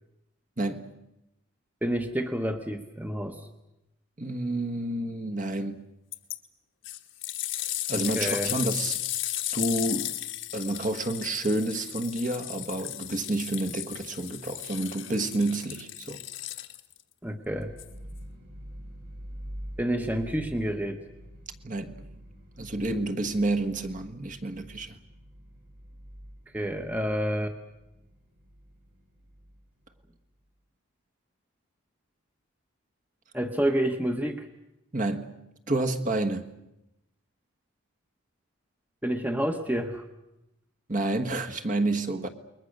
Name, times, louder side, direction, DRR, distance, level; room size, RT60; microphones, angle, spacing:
voice 1, 0.6-0.9 4.2-5.8 7.9-9.0 9.5-10.1 10.5-16.2 21.6-22.1 22.6-25.0 34.9-35.3 35.7-36.5 40.9-42.3, right 2 dB, 35° right, 5 dB, 1.4 m, -29 dB
voice 2, 1.8-3.4 7.9-8.5 17.2-17.7 19.8-21.0 26.5-27.6 33.3-34.5 39.0-40.0, right 1 dB, 10° right, 6 dB, 1.1 m, -29 dB
sound 1, 6.1-6.4 6.8-17.0 17.8-17.9, left 14 dB, 60° left, 1.3 m, -35 dB
sound 2, 17.5-30.4, equal, 60° right, 8.0 m, -46 dB
29.0 x 21.5 x 6.6 m, 0.91 s
head